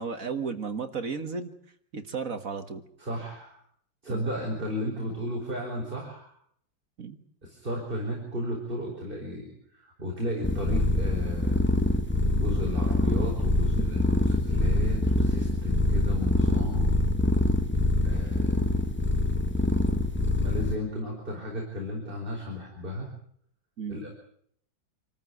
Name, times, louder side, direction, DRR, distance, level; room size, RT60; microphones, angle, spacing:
voice 1, 0.0-1.5 1.9-2.8 4.1-4.3 7.0-7.2 23.8-24.0, right 5 dB, 45° right, 8 dB, 1.8 m, -34 dB
voice 2, 3.0-3.5 4.0-6.3 7.4-11.6 12.3-17.0 18.0-18.8 20.4-23.1 23.9-24.1, left 1 dB, 25° right, 0 dB, 5.0 m, -34 dB
sound 1, 10.4-20.8, left 1 dB, 5° left, 1.1 m, -25 dB
27.0 x 14.0 x 9.4 m, 0.66 s
omnidirectional pair, 2.1 m